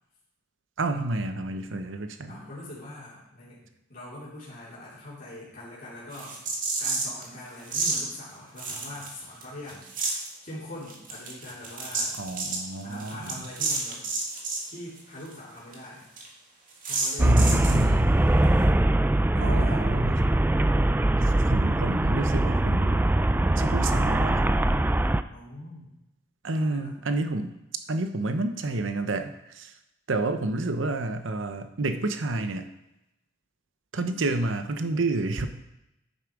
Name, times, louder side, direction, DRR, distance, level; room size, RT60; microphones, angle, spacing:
voice 1, 0.8-2.3 12.2-13.3 17.2-18.2 19.4-20.2 21.5-23.0 23.6-24.5 26.4-27.5 27.9-29.7 30.1-32.7 33.9-35.5, right 2 dB, 70° right, 8 dB, 0.8 m, -29 dB
voice 2, 2.3-6.4 6.8-9.8 10.4-12.2 12.8-14.0 14.7-16.1 16.8-18.1 19.3-19.9 24.9-25.9 26.5-27.0, left 1 dB, 45° left, -9 dB, 3.6 m, -42 dB
sound 1, 6.1-7.2 7.7-8.0 8.6-9.4 9.7-10.3 10.9-14.7 15.0-15.1 15.3-15.4 15.7-15.8 16.2-16.3 16.8-17.8, right 3 dB, 45° right, 2.3 m, -30 dB
Traffic noise roadway noise, 17.2-25.2, right 1 dB, 10° right, 0.3 m, -22 dB
10.5 x 8.7 x 4.8 m, 0.88 s
head